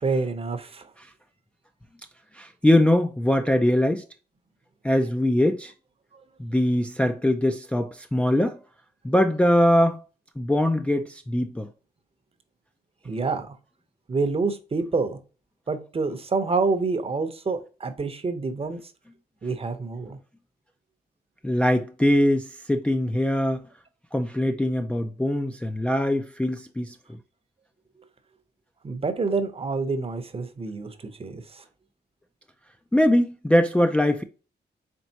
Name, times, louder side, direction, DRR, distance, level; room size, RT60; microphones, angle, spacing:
voice 1, 0.0-0.9 13.0-13.6 14.1-15.2 15.7-18.8 19.4-20.2 28.8-31.6, right 4 dB, 35° right, 0.7 m, -27 dB
voice 2, 2.3-4.0 4.8-5.7 6.4-8.6 9.0-10.0 10.4-11.7 21.4-23.6 24.1-27.0 32.9-34.2, left 1 dB, 5° left, 0.4 m, -22 dB
4.5 x 3.4 x 2.7 m
cardioid pair, 85°, 17 cm